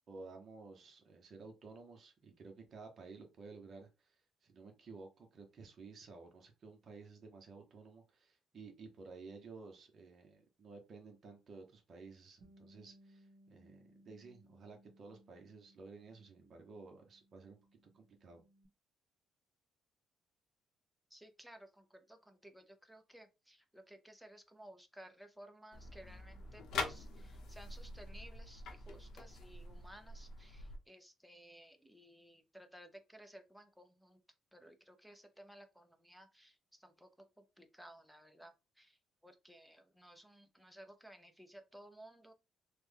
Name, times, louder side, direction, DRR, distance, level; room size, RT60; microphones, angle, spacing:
voice 1, 0.1-4.2 4.4-17.6 17.9-18.4, right 4 dB, 40° right, 0.8 m, -54 dB
Bass guitar, 12.4-18.7, right 1 dB, 70° right, 0.9 m, -65 dB
voice 2, 21.1-34.2 34.5-37.1 37.4-39.0 39.2-42.3, right 1 dB, ahead, 0.5 m, -57 dB
sound 1, 25.7-30.8, left 3 dB, 70° left, 0.7 m, -45 dB
3.2 x 2.1 x 3.4 m
cardioid pair, 145°, 0 cm